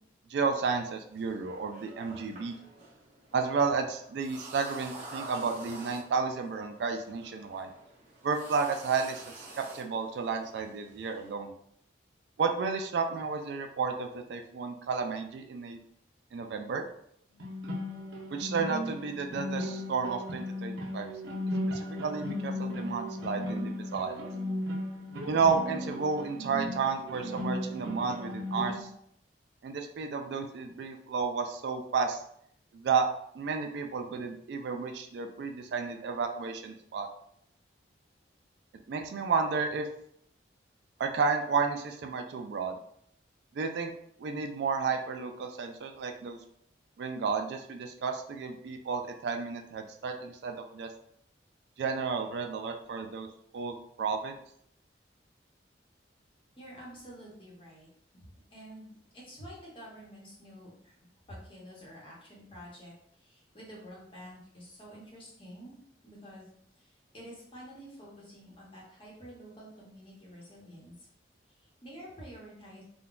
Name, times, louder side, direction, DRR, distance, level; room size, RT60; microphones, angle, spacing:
voice 1, 0.3-2.6 3.3-7.7 8.2-9.2 9.5-11.5 12.4-15.8 16.3-16.8 18.3-21.1 21.7-24.3 25.3-28.9 29.6-32.2 32.7-33.1 33.3-37.1 38.9-39.9 41.0-42.8 43.5-43.9 44.2-46.4 47.0-50.9 51.8-53.3 53.5-54.4, right 5 dB, 65° right, 5 dB, 0.3 m, -32 dB
sound 1, 1.1-11.3, right 2 dB, 40° right, 0.9 m, -48 dB
sound 2, 17.4-28.8, left 1 dB, 85° right, 0.7 m, -36 dB
voice 2, 56.6-57.9 58.1-61.0 61.3-65.8 66.0-66.5 66.8-71.1 71.6-72.8, equal, 30° left, -5 dB, 0.9 m, -49 dB
3.7 x 2.2 x 2.4 m, 0.69 s
head